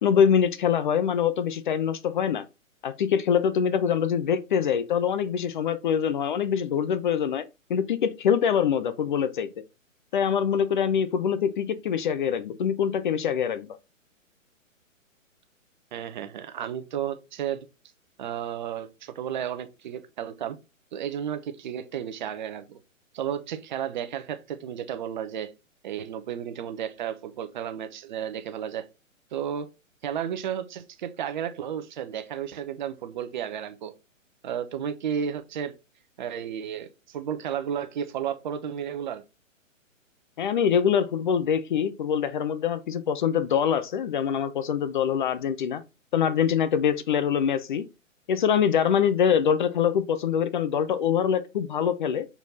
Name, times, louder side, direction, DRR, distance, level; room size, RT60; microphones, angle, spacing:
voice 1, 0.0-2.4 2.8-7.4 7.7-9.5 10.1-13.7 40.4-45.8 46.1-47.8 48.3-52.3, left 8 dB, 35° left, 0.8 m, -24 dB
voice 2, 15.9-17.7 18.2-20.6 20.9-22.8 23.1-25.5 25.8-28.8 29.3-29.7 30.0-33.9 34.4-35.7 36.2-39.2, right 9 dB, 35° right, 0.9 m, -33 dB
6.9 x 4.4 x 4.2 m
figure-of-eight pair, 130°, 40 cm